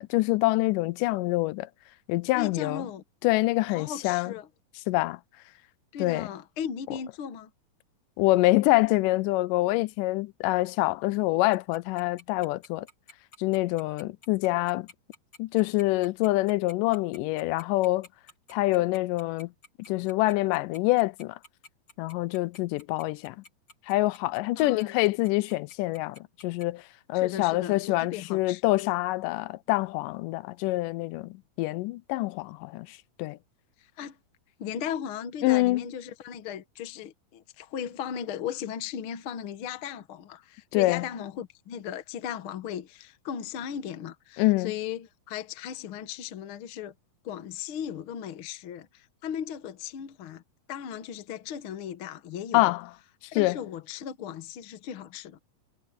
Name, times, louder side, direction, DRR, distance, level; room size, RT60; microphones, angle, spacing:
voice 1, 0.0-1.7 2.1-2.8 3.2-4.3 4.9-5.2 6.0-6.3 8.2-12.9 13.4-14.9 15.4-18.1 18.5-19.5 19.9-21.4 22.0-23.4 23.9-26.8 27.1-33.4 35.4-35.9 40.7-41.0 44.4-44.7 52.5-52.8 53.3-53.6, left 19 dB, 80° left, 2.0 m, -26 dB
voice 2, 2.3-3.0 3.7-4.5 5.9-7.5 24.6-25.0 27.1-28.6 33.8-34.2 34.6-46.9 47.2-50.4 50.7-52.7 53.3-55.4, left 9 dB, 65° left, 1.3 m, -37 dB
Tick-tock, 11.5-26.6, left 3 dB, 30° left, 4.4 m, -50 dB
omnidirectional pair, 4.1 m